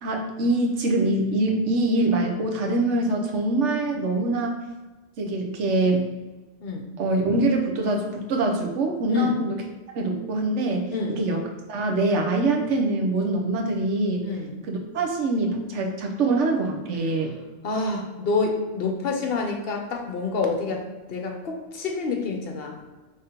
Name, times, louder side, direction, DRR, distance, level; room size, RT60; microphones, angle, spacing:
voice 1, 0.0-4.6 5.2-6.1 7.0-9.5 9.9-11.4 11.7-14.2 14.7-17.3, right 2 dB, 75° right, 1 dB, 1.1 m, -24 dB
voice 2, 14.2-14.5 17.6-22.8, left 4 dB, 60° left, 2 dB, 0.8 m, -27 dB
5.1 x 3.5 x 2.9 m, 1.2 s
omnidirectional pair, 1.3 m